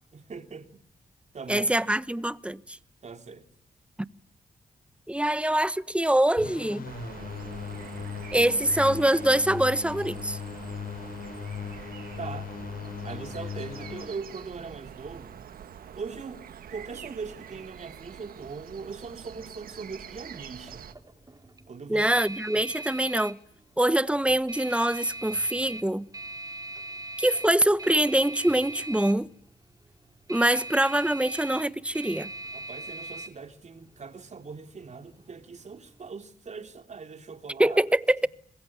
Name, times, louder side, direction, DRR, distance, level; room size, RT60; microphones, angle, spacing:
voice 1, 0.1-0.8 1.3-1.7 3.0-3.4 12.2-12.6 13.0-15.5 15.9-16.4 16.7-20.9 21.7-22.1 32.5-37.8, right 5 dB, 50° right, 3.3 m, -40 dB
voice 2, 1.5-2.8 5.1-6.9 8.3-10.4 21.9-23.4 23.8-26.1 27.2-29.3 30.3-32.3 37.6-38.3, right 1 dB, 10° right, 1.2 m, -24 dB
sound 1, 6.4-14.1, left 6 dB, 80° left, 5.5 m, -38 dB
sound 2, 6.8-20.9, right 9 dB, 85° right, 1.4 m, -45 dB
sound 3, 19.3-36.1, right 2 dB, 25° right, 4.5 m, -42 dB
26.0 x 21.5 x 8.7 m
cardioid pair, 70°, 15 cm